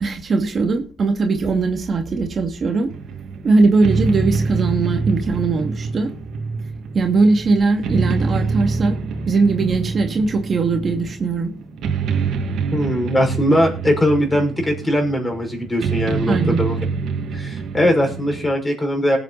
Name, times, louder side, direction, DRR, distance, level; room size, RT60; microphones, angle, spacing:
voice 1, 0.0-2.9 3.4-6.1 6.9-9.0 9.3-11.5 16.3-16.6, right 3 dB, 45° right, 3 dB, 2.4 m, -19 dB
sound 1, 2.9-18.5, right 4 dB, 75° right, 2.4 m, -26 dB
voice 2, 12.7-16.8 17.3-19.2, equal, 15° left, 2 dB, 6.0 m, -20 dB
19.5 x 8.0 x 4.2 m, 0.37 s
cardioid pair, 90°, 0 cm